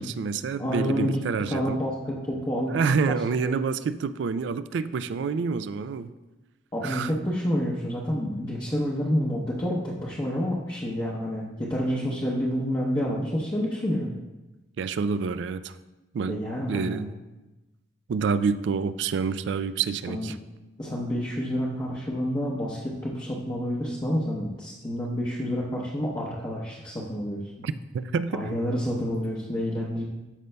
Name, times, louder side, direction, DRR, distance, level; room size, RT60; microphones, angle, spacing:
voice 1, 0.0-1.8 2.7-6.1 6.8-7.1 14.8-15.8 16.1-16.4 16.7-17.1 18.1-20.4 27.6-28.5, right 5 dB, 65° right, 14 dB, 0.3 m, -28 dB
voice 2, 0.6-1.2 1.5-2.8 3.1-3.2 6.7-14.1 16.3-17.1 20.1-20.3 20.8-27.7 28.3-30.0, equal, 20° left, -5 dB, 0.8 m, -29 dB
13.0 x 5.3 x 2.2 m, 1.1 s
head